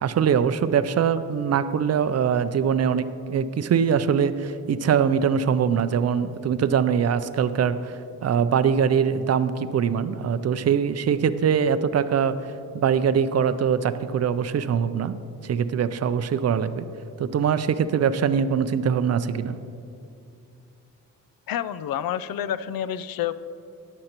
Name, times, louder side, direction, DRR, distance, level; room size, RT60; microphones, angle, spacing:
voice 1, 0.0-12.4 12.7-15.1 15.4-16.9 17.2-19.5, right 7 dB, 50° right, 12 dB, 0.4 m, -23 dB
voice 2, 21.5-23.3, left 10 dB, 80° left, 15 dB, 0.5 m, -28 dB
14.0 x 10.5 x 2.9 m, 2.5 s
wide cardioid pair, 145°, 34 cm